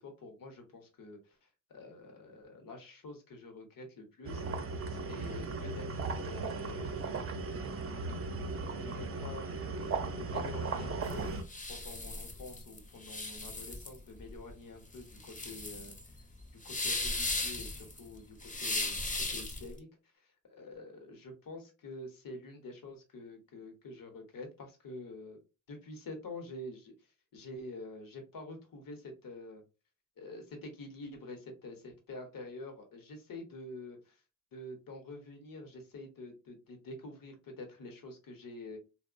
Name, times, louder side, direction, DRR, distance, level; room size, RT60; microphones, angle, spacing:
voice 1, 0.0-1.4 1.7-4.4 5.1-6.8 8.8-11.2 11.7-15.9 16.6-19.9 20.2-25.4 25.7-26.9 27.3-29.6 30.2-34.2 34.5-38.8, left 2 dB, 85° left, 4 dB, 0.8 m, -47 dB
sound 1, 4.2-11.4, right 3 dB, 45° right, 0.5 m, -37 dB
sound 2, 11.0-19.7, left 2 dB, 25° left, 0.5 m, -37 dB
2.9 x 2.0 x 2.4 m, 0.30 s
cardioid pair, 75°, 33 cm